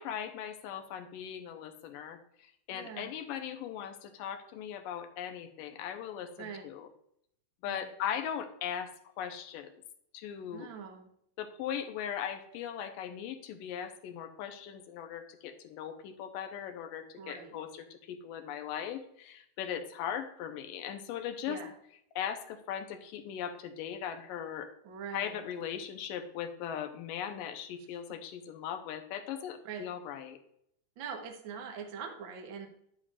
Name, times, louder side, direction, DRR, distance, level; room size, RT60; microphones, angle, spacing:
voice 1, 0.0-2.2 2.7-6.9 7.6-8.9 9.2-9.7 10.1-10.7 11.4-21.6 22.2-24.7 25.1-30.4, left 9 dB, 85° left, 6 dB, 2.4 m, -39 dB
voice 2, 2.7-3.1 6.4-6.7 7.7-7.9 10.5-11.1 17.2-17.6 21.5-21.7 24.8-25.4 29.6-29.9 31.0-32.7, right 6 dB, 65° right, 3 dB, 1.2 m, -43 dB
10.0 x 8.9 x 2.5 m, 0.72 s
omnidirectional pair, 4.0 m